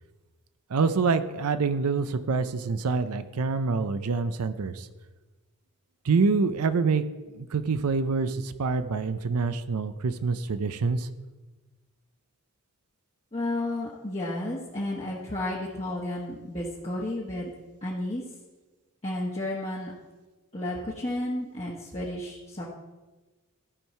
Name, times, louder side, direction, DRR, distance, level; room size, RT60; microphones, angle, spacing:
voice 1, 0.7-4.9 6.0-7.0 7.3-11.1, right 4 dB, 85° right, 12 dB, 0.5 m, -26 dB
voice 2, 13.3-17.5 17.8-18.2 19.0-19.9 20.5-22.7, left 1 dB, 30° left, -6 dB, 1.1 m, -32 dB
13.5 x 4.6 x 5.5 m, 1.2 s
head